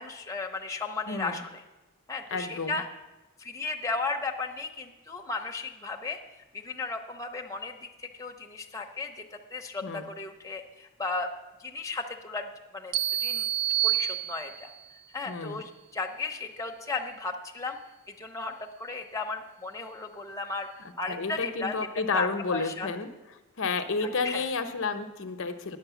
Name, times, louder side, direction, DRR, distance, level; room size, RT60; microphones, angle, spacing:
voice 1, 0.0-1.4 2.1-2.8 3.4-6.2 6.5-11.3 11.6-13.5 13.8-14.7 15.1-17.8 18.1-20.7 21.0-21.7 22.1-22.9 24.0-24.5, left 3 dB, 15° left, 2 dB, 0.8 m, -35 dB
voice 2, 1.1-1.4 2.3-2.8 9.8-10.0 15.3-15.6 21.1-23.1 23.6-25.8, left 4 dB, 60° left, 8 dB, 0.7 m, -31 dB
sound 1, 12.9-14.8, right 12 dB, 85° right, 0.6 m, -28 dB
9.9 x 7.8 x 7.0 m, 1.1 s
head